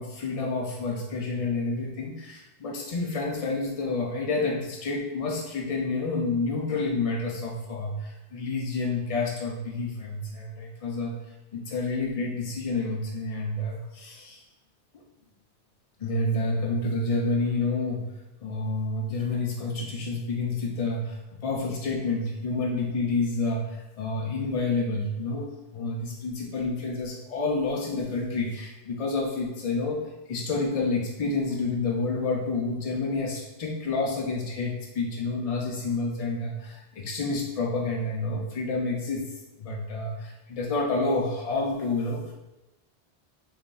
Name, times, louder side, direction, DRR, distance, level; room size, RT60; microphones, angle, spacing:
voice 1, 0.0-11.1 11.5-14.4 16.0-18.1 18.4-39.3 39.6-42.3, left 3 dB, 70° left, -2 dB, 0.3 m, -29 dB
3.4 x 2.4 x 3.8 m, 1.0 s
omnidirectional pair, 1.2 m